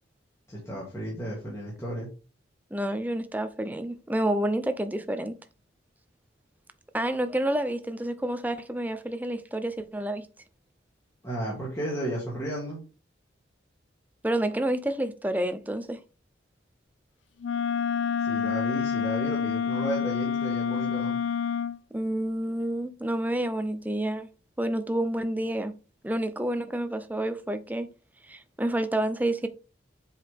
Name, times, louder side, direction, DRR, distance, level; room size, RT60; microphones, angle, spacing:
voice 1, 0.5-2.1 11.2-12.8 18.2-21.2, right 1 dB, 15° left, 2.2 m, -33 dB
voice 2, 2.7-5.4 6.9-10.3 14.2-16.0 21.9-24.3 24.6-25.7 26.0-27.9 28.3-29.5, right 1 dB, 10° right, 0.5 m, -29 dB
Wind instrument woodwind instrument, 17.4-21.8, left 7 dB, 75° left, 0.4 m, -28 dB
7.7 x 4.8 x 3.5 m
head